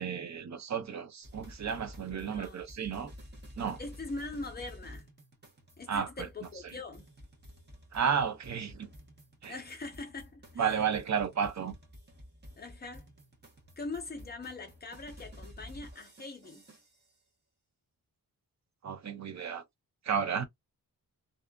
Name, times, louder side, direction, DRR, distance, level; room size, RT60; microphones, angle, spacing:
voice 1, 0.0-3.1 3.6-3.8 5.9-6.3 6.6-6.7 7.9-8.9 9.4-9.6 10.6-11.8 18.8-19.6 20.0-20.5, right 7 dB, 50° right, 0.6 m, -32 dB
sound 1, 1.2-17.1, equal, 30° right, 1.0 m, -52 dB
voice 2, 2.1-2.6 3.8-5.1 5.8-7.1 9.5-10.6 12.6-13.1 13.8-16.6, left 3 dB, 25° left, 0.7 m, -42 dB
2.6 x 2.4 x 2.2 m
wide cardioid pair, 155°, 37 cm